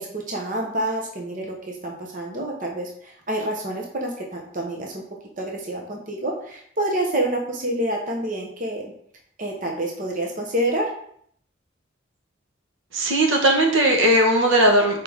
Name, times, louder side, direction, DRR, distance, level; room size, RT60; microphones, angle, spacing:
voice 1, 0.0-5.0 5.4-8.9 9.4-10.9, right 1 dB, 40° right, 0 dB, 1.0 m, -28 dB
voice 2, 12.9-15.0, right 1 dB, 75° right, 1 dB, 1.3 m, -18 dB
6.7 x 4.8 x 3.6 m, 0.64 s
head